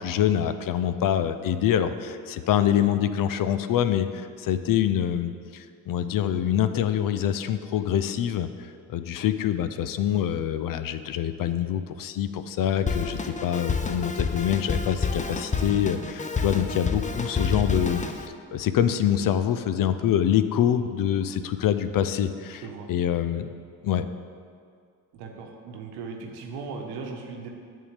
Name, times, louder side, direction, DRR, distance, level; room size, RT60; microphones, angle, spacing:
voice 1, 0.0-18.2 18.5-23.5 23.8-24.1, left 10 dB, 60° left, 11 dB, 0.6 m, -25 dB
Drum kit, 12.9-18.3, left 4 dB, 20° left, 0.6 m, -29 dB
voice 2, 25.1-27.5, right 4 dB, 85° right, 2 dB, 1.0 m, -37 dB
8.3 x 3.7 x 6.5 m, 2.2 s
supercardioid pair, 55°, 37 cm